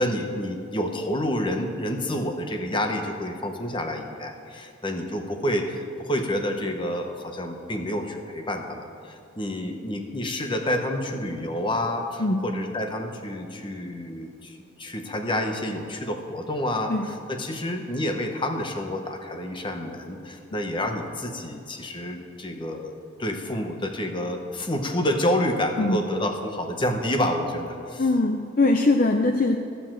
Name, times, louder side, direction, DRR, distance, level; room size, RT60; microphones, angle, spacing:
voice 1, 0.0-28.1, left 1 dB, 25° left, 5 dB, 1.0 m, -29 dB
voice 2, 28.0-29.6, left 2 dB, 40° left, 4 dB, 0.5 m, -21 dB
15.0 x 6.9 x 7.6 m, 2.6 s
head